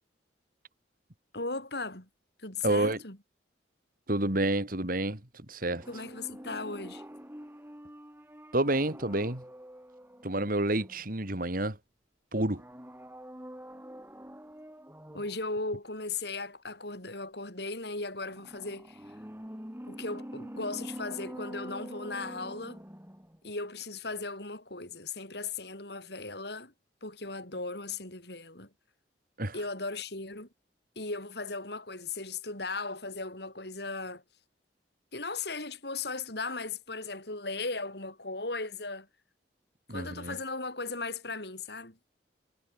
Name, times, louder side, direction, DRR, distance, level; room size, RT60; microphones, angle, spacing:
voice 1, 1.3-2.1 2.4-3.2 5.9-7.0 15.1-19.0 19.9-22.8 23.4-26.7 27.0-28.7 29.5-30.5 30.9-34.2 35.1-39.1 39.9-42.0, left 3 dB, 60° left, 6.8 m, -37 dB
voice 2, 2.6-3.0 4.1-5.2 5.5-5.9 8.5-9.4 10.2-11.8 12.3-12.6 29.4-29.5 39.9-40.4, right 1 dB, 50° right, 3.1 m, -29 dB
sound 1, 5.7-11.4 12.5-15.5 18.3-23.5 23.8-23.9, equal, 10° right, 7.3 m, -46 dB
head